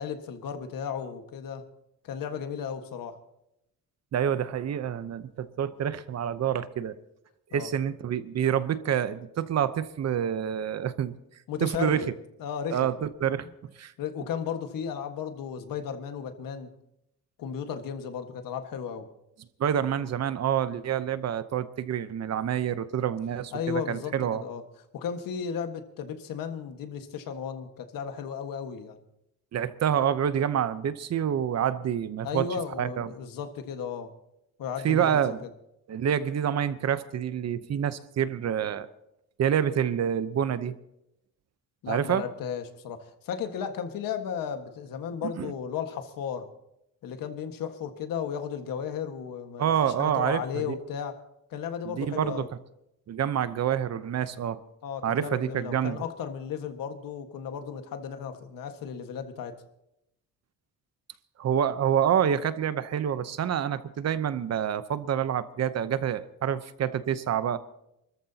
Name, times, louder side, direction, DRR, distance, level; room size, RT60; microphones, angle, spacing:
voice 1, 0.0-1.7 2.0-3.2 7.5-7.7 11.5-12.1 12.4-12.9 13.2-13.3 14.0-16.7 17.4-19.1 23.5-24.6 24.9-29.0 32.2-34.1 34.6-35.5 41.8-46.5 47.0-51.2 51.5-52.5 54.8-59.6, left 7 dB, 75° left, 7 dB, 1.7 m, -34 dB
voice 2, 4.1-7.0 7.5-11.1 11.6-12.0 12.7-13.5 13.8-13.9 19.6-24.4 29.5-32.4 32.8-33.1 34.8-35.4 35.9-38.9 39.4-40.7 41.9-42.2 45.2-45.5 49.6-50.4 50.7-50.8 51.8-52.4 53.1-54.6 55.0-56.0 61.4-67.6, right 9 dB, 50° right, 13 dB, 0.9 m, -27 dB
28.5 x 14.0 x 2.9 m, 0.82 s
cardioid pair, 130°, 34 cm